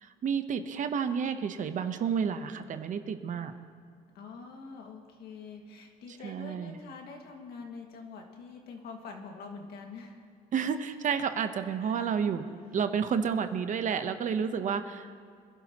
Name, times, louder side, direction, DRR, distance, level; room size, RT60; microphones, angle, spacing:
voice 1, 0.0-3.5 6.2-6.8 10.5-15.2, right 7 dB, 50° right, 9 dB, 0.9 m, -31 dB
voice 2, 4.1-10.3 11.8-12.1, left 4 dB, 70° left, 2 dB, 1.9 m, -45 dB
25.5 x 12.0 x 3.0 m, 2.1 s
cardioid pair, 110°, 17 cm